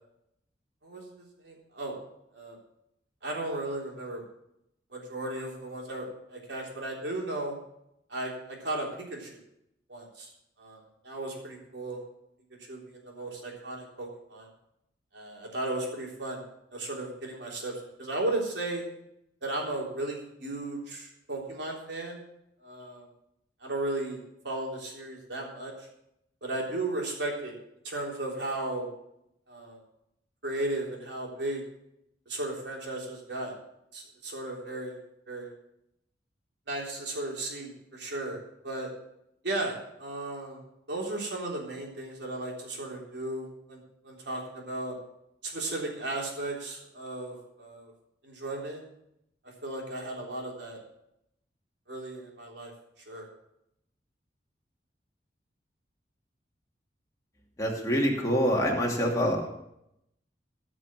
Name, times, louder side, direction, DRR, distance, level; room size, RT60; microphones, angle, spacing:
voice 1, 1.4-2.0 2.3-2.6 3.2-4.2 4.9-7.6 8.1-9.4 9.9-10.3 10.6-10.8 11.0-12.0 12.7-14.5 15.1-16.4 16.7-17.7 18.0-18.8 19.4-22.2 22.6-23.1 23.6-25.7 26.4-27.6 27.8-28.9 29.5-29.8 30.4-31.6 32.3-33.6 33.9-35.0 35.3-35.5 36.7-38.4 38.6-38.9 39.4-40.6 40.9-44.9 45.4-47.9 48.2-48.8 49.6-50.8 51.9-52.7 53.1-53.3, right 2 dB, 70° right, -1 dB, 3.5 m, -35 dB
voice 2, 57.6-59.5, equal, 20° left, -2 dB, 2.6 m, -26 dB
15.5 x 6.1 x 7.4 m, 0.80 s
head